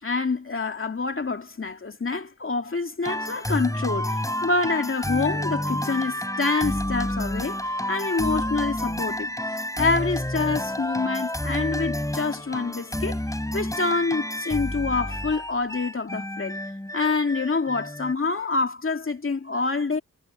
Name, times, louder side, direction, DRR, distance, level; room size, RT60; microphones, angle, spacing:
voice 1, 0.0-7.6 7.9-9.3 9.8-13.2 13.5-16.6 16.9-20.0, left 3 dB, 40° left, 2.4 m, -26 dB
sound 1, 3.0-18.1, left 1 dB, 10° left, 3.8 m, -29 dB
cardioid pair, 75°, 33 cm